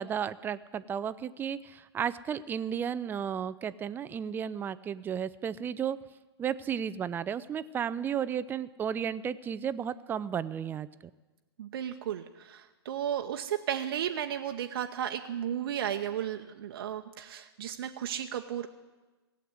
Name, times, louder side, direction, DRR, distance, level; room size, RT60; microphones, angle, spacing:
voice 1, 0.0-6.0 6.4-10.9, right 8 dB, 15° right, 15 dB, 0.4 m, -33 dB
voice 2, 11.6-18.7, right 10 dB, 60° right, 6 dB, 0.8 m, -34 dB
17.0 x 7.9 x 9.4 m, 1.2 s
hypercardioid pair, 115°, 14 cm